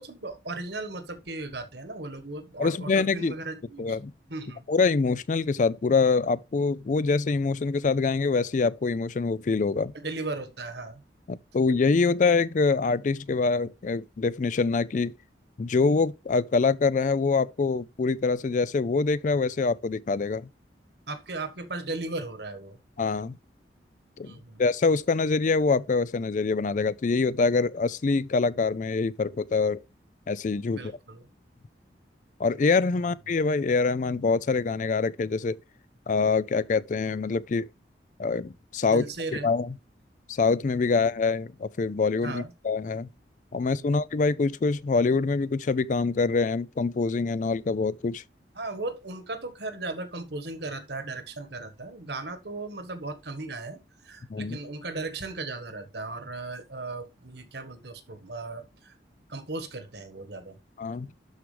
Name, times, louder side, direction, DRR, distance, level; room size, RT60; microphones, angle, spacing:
voice 1, 0.0-4.0 4.3-4.6 9.9-11.0 21.1-22.8 24.2-24.6 30.7-31.3 32.9-33.1 38.8-39.5 42.2-42.5 43.5-43.9 48.5-53.8 54.0-58.9 59.3-60.6, right 2 dB, 70° right, 1.5 m, -37 dB
voice 2, 2.6-3.3 3.8-4.1 4.7-9.9 11.3-15.1 15.6-20.5 23.0-23.4 24.2-29.8 30.3-30.9 32.4-35.6 36.1-37.7 38.2-39.0 39.4-39.7 40.3-43.1 43.5-48.2 54.3-54.6 60.8-61.1, left 4 dB, 45° left, 0.4 m, -25 dB
12.0 x 4.8 x 3.3 m
head